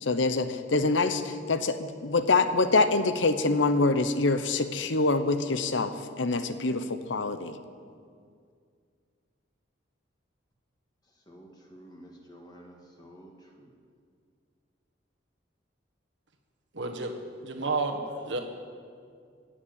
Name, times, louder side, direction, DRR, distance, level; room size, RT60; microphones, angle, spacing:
voice 1, 0.0-7.6, left 3 dB, 85° left, 11 dB, 0.9 m, -25 dB
voice 2, 11.3-13.7, equal, 20° left, 0 dB, 1.6 m, -51 dB
voice 3, 16.7-17.1 17.4-18.4, right 3 dB, 80° right, 4 dB, 1.5 m, -31 dB
15.5 x 7.3 x 8.8 m, 2.2 s
head